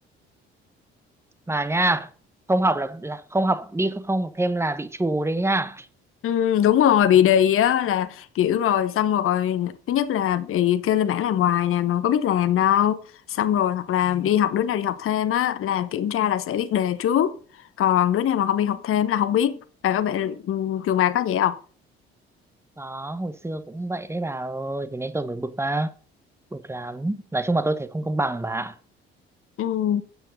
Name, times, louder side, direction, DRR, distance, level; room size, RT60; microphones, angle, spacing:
voice 1, 1.5-2.1 2.5-5.9 14.1-14.3 22.8-25.9 26.5-28.8, right 2 dB, 10° right, 1.0 m, -26 dB
voice 2, 6.2-13.0 13.3-17.4 17.8-21.6 29.6-30.0, left 10 dB, 45° left, 0.9 m, -22 dB
8.9 x 8.0 x 5.3 m
figure-of-eight pair, 45°, 30 cm